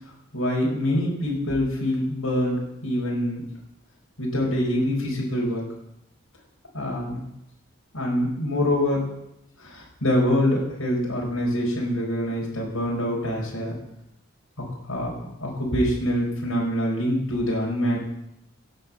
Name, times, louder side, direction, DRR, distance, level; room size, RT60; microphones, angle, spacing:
voice 1, 0.3-3.4 4.2-5.6 6.7-7.2 7.9-9.1 9.6-13.8 14.9-18.0, left 1 dB, 90° left, -2 dB, 4.8 m, -25 dB
16.5 x 6.9 x 7.4 m, 0.83 s
head